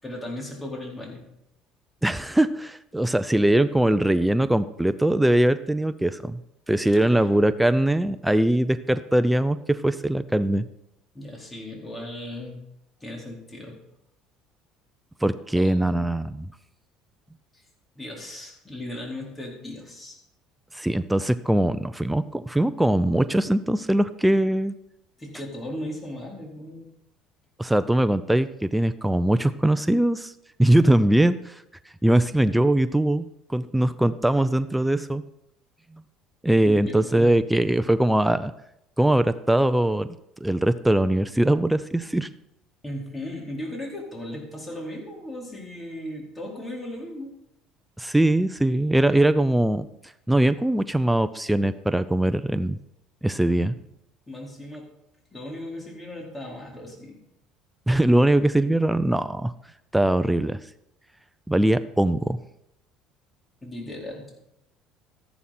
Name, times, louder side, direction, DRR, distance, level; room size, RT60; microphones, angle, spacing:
voice 1, 0.0-1.2 7.0-7.4 11.1-12.6 13.0-13.8 15.6-16.1 17.5-17.6 17.9-20.2 25.2-26.9 36.6-37.3 42.8-47.3 54.3-54.9 55.3-57.2 63.6-64.3, left 1 dB, 15° left, -1 dB, 4.5 m, -37 dB
voice 2, 2.0-6.4 6.7-10.6 15.2-16.5 20.7-24.7 27.6-30.3 30.6-31.6 32.0-35.2 36.4-38.5 39.0-40.1 40.4-42.3 48.0-49.9 50.3-52.8 53.2-53.8 57.9-59.5 59.9-60.6 61.5-62.4, right 1 dB, 5° right, 12 dB, 0.5 m, -21 dB
13.5 x 11.5 x 4.4 m, 0.80 s
supercardioid pair, 105°, 0 cm